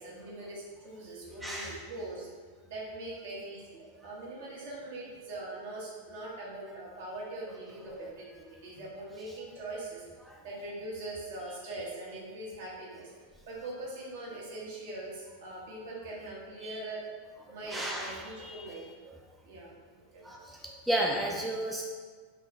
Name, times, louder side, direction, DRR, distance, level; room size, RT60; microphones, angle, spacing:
voice 1, 0.0-2.3 2.6-10.0 10.4-13.1 13.5-17.0 17.5-18.8 19.4-20.4, right 2 dB, 55° right, -5 dB, 1.3 m, -42 dB
voice 2, 1.4-1.8 7.9-8.1 10.3-10.4 16.6-16.8 17.7-18.6 20.2-20.6 20.9-21.8, right 1 dB, 5° right, -2 dB, 0.4 m, -33 dB
3.9 x 2.9 x 4.1 m, 1.5 s
figure-of-eight pair, 90°, 0 cm